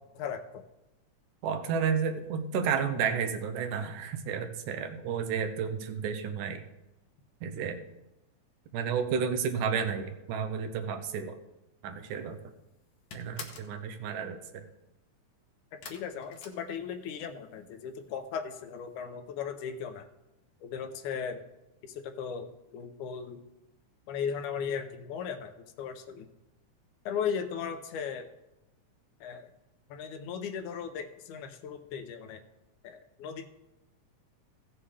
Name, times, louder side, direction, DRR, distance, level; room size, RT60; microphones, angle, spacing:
voice 1, 0.1-0.6 15.7-20.1 20.6-21.4 21.8-23.4 24.1-26.3 27.1-28.3 29.2-29.5 29.9-32.4 32.8-33.5, left 7 dB, 75° left, 7 dB, 2.2 m, -37 dB
voice 2, 1.4-6.6 7.4-7.8 8.7-11.4 11.8-12.4 13.1-14.6, right 6 dB, 85° right, 7 dB, 2.4 m, -31 dB
sound 1, 12.1-12.5 12.7-13.8 15.8-17.3 17.6-18.2 18.5-18.6 19.0-19.1, left 5 dB, 60° left, 1.4 m, -46 dB
16.0 x 7.4 x 3.3 m, 0.96 s
omnidirectional pair, 3.6 m